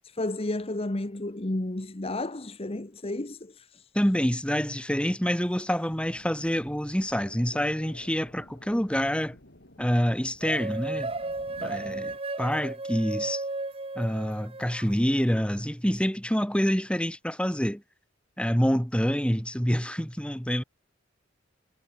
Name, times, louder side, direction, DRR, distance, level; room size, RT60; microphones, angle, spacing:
voice 1, 0.0-3.9, left 2 dB, 30° left, 1.1 m, -32 dB
voice 2, 3.9-9.4 9.8-11.1 11.6-13.4 14.0-17.8 18.4-20.6, equal, 5° left, 4.5 m, -27 dB
sound 1, 5.9-12.2, left 1 dB, 65° left, 5.5 m, -51 dB
sound 2, 10.4-14.9, right 2 dB, 30° right, 2.0 m, -34 dB
head